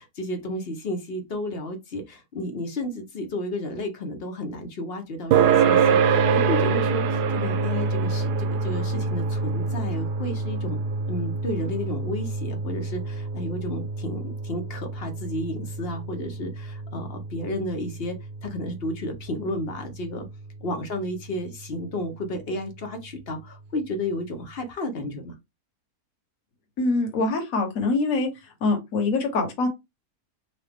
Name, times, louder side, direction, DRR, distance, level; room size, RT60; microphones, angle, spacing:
voice 1, 0.0-10.8 11.1-18.2 18.4-20.3 20.6-25.3, left 1 dB, 45° left, 0.9 m, -32 dB
sound 1, 5.3-20.2, right 5 dB, 80° right, 1.1 m, -26 dB
voice 2, 26.8-28.3 28.6-29.7, left 3 dB, 65° left, 1.4 m, -24 dB
4.0 x 2.4 x 3.4 m
omnidirectional pair, 1.6 m